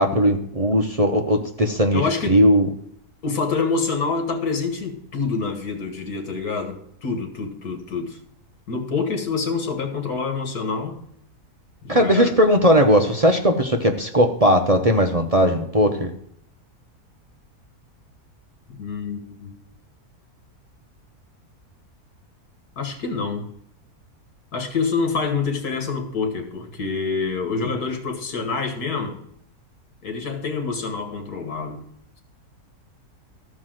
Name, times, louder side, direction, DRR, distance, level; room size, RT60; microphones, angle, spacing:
voice 1, 0.0-2.7 11.9-16.1, equal, 30° right, 4 dB, 0.7 m, -18 dB
voice 2, 1.9-2.4 3.2-8.2 8.7-11.0 11.8-12.3 18.8-19.6 22.8-23.5 24.5-29.2 30.0-31.8, left 4 dB, 90° left, 6 dB, 2.2 m, -26 dB
13.5 x 4.8 x 7.6 m, 0.70 s
omnidirectional pair, 1.6 m